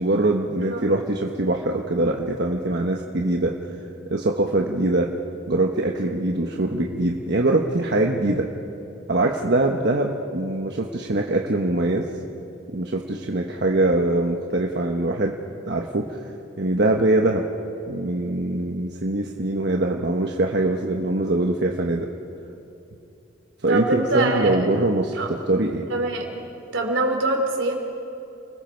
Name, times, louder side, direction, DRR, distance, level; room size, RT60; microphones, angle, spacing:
voice 1, 0.0-3.5 4.1-5.1 5.5-8.5 9.1-12.1 12.7-15.4 15.7-16.2 16.6-17.5 17.9-22.1 23.6-25.9, right 2 dB, 60° right, 1 dB, 1.2 m, -23 dB
voice 2, 23.7-24.6 25.2-25.3 25.9-26.3 26.7-27.7, right 2 dB, 80° right, 2 dB, 3.3 m, -24 dB
30.0 x 20.5 x 4.6 m, 2.8 s
head